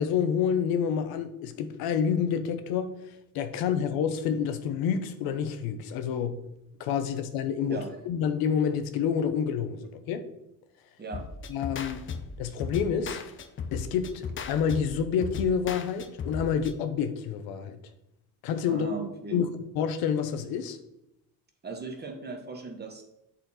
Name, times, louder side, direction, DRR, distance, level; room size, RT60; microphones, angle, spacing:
voice 1, 0.0-6.4 6.8-10.3 11.5-12.0 12.4-13.2 13.7-17.8 18.4-18.9 19.3-19.5 19.7-20.8, left 7 dB, 85° left, 10 dB, 0.9 m, -28 dB
sound 1, 11.1-16.7, left 5 dB, 35° left, 0.6 m, -37 dB
voice 2, 18.7-19.4 21.6-23.0, right 4 dB, 30° right, 3 dB, 1.2 m, -38 dB
8.0 x 4.3 x 4.2 m, 0.85 s
cardioid pair, 115°, 35 cm